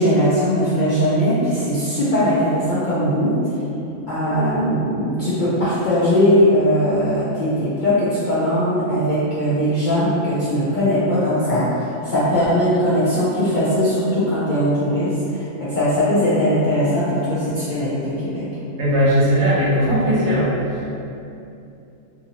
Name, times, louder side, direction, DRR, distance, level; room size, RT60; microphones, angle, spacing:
voice 1, 0.0-3.4 4.1-15.4 15.7-18.5, equal, 55° left, -11 dB, 0.5 m, -19 dB
voice 2, 18.8-20.9, equal, 60° right, -7 dB, 0.9 m, -18 dB
2.7 x 2.6 x 2.8 m, 2.7 s
omnidirectional pair, 1.4 m